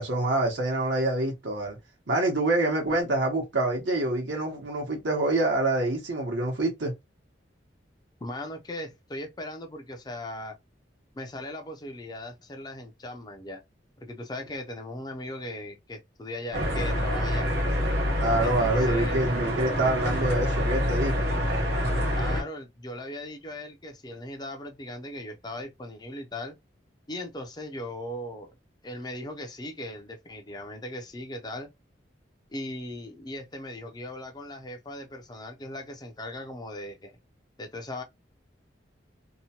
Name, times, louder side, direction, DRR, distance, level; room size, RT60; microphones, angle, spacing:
voice 1, 0.0-1.8 2.1-6.9 18.2-21.3, right 2 dB, 80° right, 0.9 m, -26 dB
voice 2, 8.2-10.6 11.1-13.6 14.0-17.5 18.4-19.2 22.1-26.6 27.1-28.6 28.8-31.7 32.5-37.1 37.6-38.0, left 1 dB, 20° left, 0.4 m, -38 dB
sound 1, 16.5-22.4, equal, 55° right, 1.0 m, -26 dB
2.9 x 2.1 x 2.8 m
head